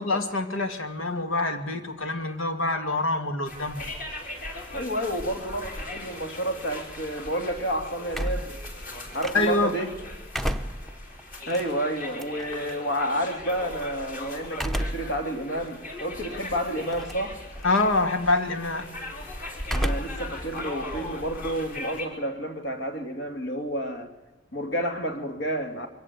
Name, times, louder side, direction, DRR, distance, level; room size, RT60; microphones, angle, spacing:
voice 1, 0.0-3.8 9.3-9.7 17.6-18.9, left 2 dB, 90° left, 2.3 m, -26 dB
sound 1, 3.4-22.0, left 1 dB, 45° left, 4.0 m, -39 dB
voice 2, 4.7-8.6 9.1-9.9 11.5-17.4 19.7-24.1 24.5-25.9, equal, 70° left, 2.8 m, -30 dB
sound 2, 8.1-9.7 10.1-12.7 14.5-15.2 15.7-15.8 16.8-17.3 17.6-18.1 19.6-20.3 20.6-22.0, equal, ahead, 0.7 m, -32 dB
23.5 x 17.0 x 8.3 m
head